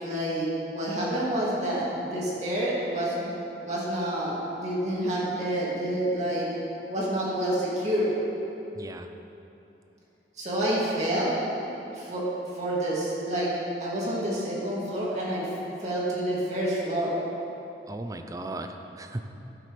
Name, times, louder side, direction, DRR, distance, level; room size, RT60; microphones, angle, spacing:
voice 1, 0.0-3.3 3.6-6.5 6.9-8.1 10.4-11.3 11.9-12.2 12.5-13.5 13.8-15.5 15.8-17.1, right 1 dB, 40° right, -7 dB, 2.5 m, -28 dB
voice 2, 8.7-9.1 17.9-19.3, right 2 dB, 20° right, 6 dB, 0.5 m, -36 dB
15.5 x 7.6 x 3.3 m, 2.9 s
head